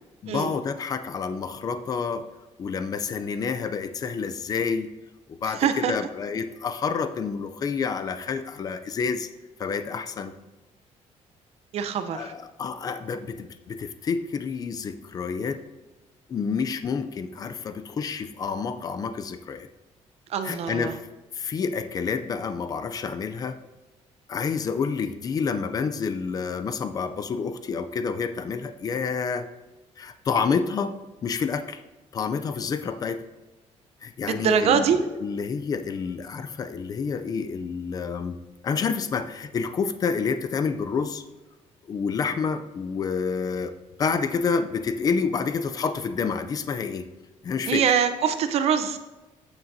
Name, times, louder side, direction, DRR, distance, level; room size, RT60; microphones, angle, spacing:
voice 1, 0.2-2.2 2.6-4.9 5.3-9.3 9.6-10.3 12.1-15.6 16.3-19.7 20.4-21.0 21.3-23.6 24.3-29.5 30.0-31.8 32.1-33.2 34.0-38.4 38.6-41.2 41.9-47.0 47.4-47.8, left 5 dB, 30° left, 10 dB, 0.4 m, -29 dB
voice 2, 5.4-6.0 11.7-12.3 20.3-21.0 34.2-35.0 47.7-49.0, right 7 dB, 55° right, 9 dB, 0.7 m, -23 dB
14.5 x 6.0 x 2.7 m, 1.1 s
cardioid pair, 180°, 12 cm